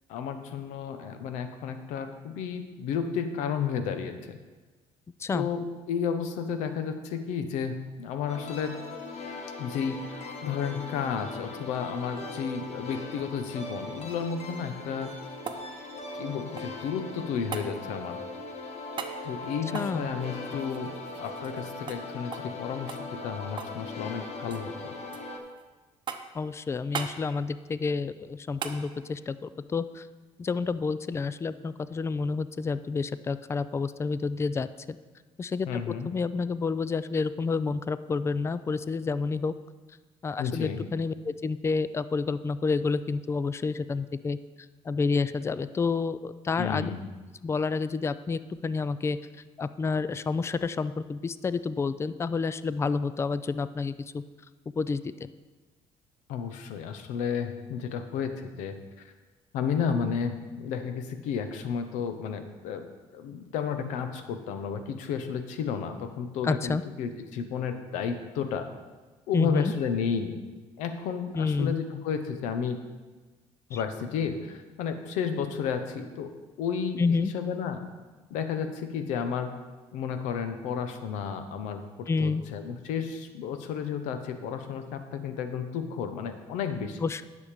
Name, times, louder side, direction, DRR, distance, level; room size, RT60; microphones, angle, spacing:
voice 1, 0.1-4.4 5.3-8.7 9.6-15.1 16.1-18.2 19.2-23.0 23.2-24.9 35.7-36.1 40.4-40.8 46.6-47.1 56.3-59.1 59.5-62.9 63.1-68.7 69.3-70.4 70.8-72.8 73.7-76.3 76.6-77.9 78.3-79.5 79.9-87.0, left 7 dB, 90° left, 8 dB, 0.9 m, -32 dB
sound 1, 8.3-25.4, left 2 dB, 60° left, 1.4 m, -40 dB
sound 2, 14.8-16.9 17.5-17.7 18.9-19.2 19.7-21.6 21.9-22.0 22.3-22.5 22.9-23.8 24.1-24.7 25.1-25.6 26.1-26.4 26.9-27.2 28.6-28.8 31.2-31.3, right 6 dB, 40° right, 0.8 m, -39 dB
voice 2, 19.7-20.1 26.3-30.1 30.4-35.0 35.4-35.8 36.1-39.5 40.2-44.4 44.9-46.9 47.4-49.2 49.6-54.2 54.8-55.0 66.4-66.8 69.3-69.7 71.3-71.8 77.0-77.3 82.1-82.4 87.0-87.2, left 4 dB, 20° left, 14 dB, 0.4 m, -29 dB
10.0 x 6.5 x 5.1 m, 1.3 s
cardioid pair, 100°, 12 cm